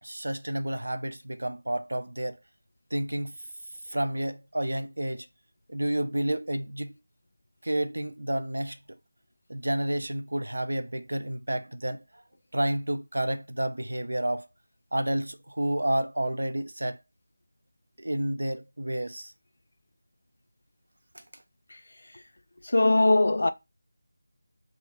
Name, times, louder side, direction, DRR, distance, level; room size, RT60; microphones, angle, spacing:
voice 1, 0.0-2.4 2.9-3.3 3.9-5.3 5.7-6.9 7.6-9.0 9.5-12.0 12.5-14.5 14.9-17.0 18.0-19.3 21.1-21.2, right 1 dB, 70° right, 0.5 m, -30 dB
voice 2, 22.6-23.5, left 2 dB, 60° left, 0.3 m, -20 dB
2.7 x 2.4 x 3.4 m
figure-of-eight pair, 165°, 0 cm